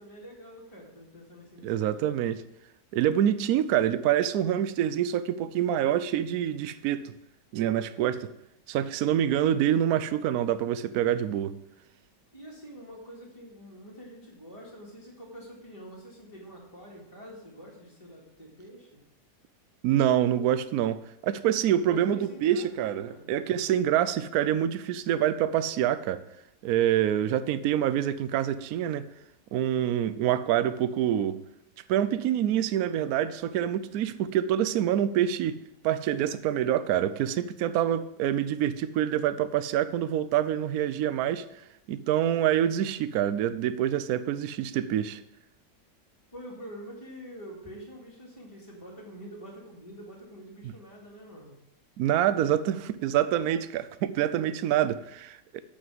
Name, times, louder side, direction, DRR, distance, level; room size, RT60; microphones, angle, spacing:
voice 1, 0.0-2.2 12.3-19.0 21.8-23.3 46.3-51.6, equal, 20° left, 2.2 m, -46 dB
voice 2, 1.6-2.4 2.9-7.1 7.5-8.3 8.7-11.6 19.8-26.2 26.6-29.1 29.5-31.4 31.9-35.6 35.8-41.4 41.9-45.2 52.0-55.6, right 10 dB, 70° right, 1.0 m, -26 dB
8.5 x 5.5 x 7.6 m
omnidirectional pair, 1.9 m